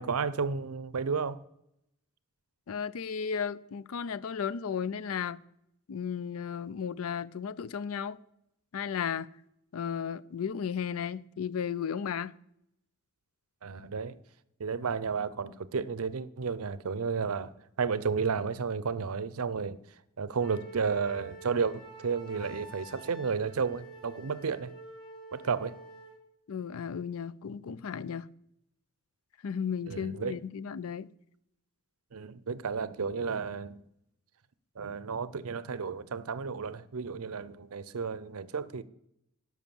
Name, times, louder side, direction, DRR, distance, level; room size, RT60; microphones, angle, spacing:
voice 1, 0.0-1.4 13.6-14.2 14.6-19.8 20.2-24.7 25.3-25.7 29.9-30.4 32.1-33.8 34.8-38.8, right 5 dB, 70° right, 0.6 m, -32 dB
voice 2, 2.7-5.4 5.9-8.2 8.7-9.3 9.7-12.3 26.5-28.3 29.4-31.1, left 7 dB, 70° left, 0.4 m, -34 dB
Wind instrument woodwind instrument, 20.4-26.2, right 2 dB, 20° left, 2.9 m, -48 dB
11.0 x 6.2 x 7.0 m
head